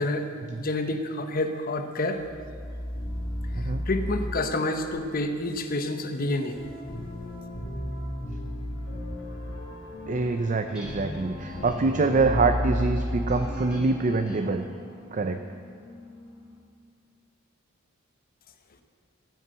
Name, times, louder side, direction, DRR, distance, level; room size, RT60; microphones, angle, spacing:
voice 1, 0.6-2.2 3.9-6.6, left 2 dB, 45° left, 6 dB, 1.0 m, -28 dB
sound 1, 2.2-14.2, equal, 75° left, 3.4 m, -34 dB
voice 2, 3.5-3.8 10.1-14.6 15.1-15.4, right 3 dB, 40° right, 7 dB, 0.5 m, -25 dB
sound 2, 10.7-16.6, left 1 dB, 5° right, 3.3 m, -43 dB
15.0 x 6.5 x 7.9 m, 2.1 s
head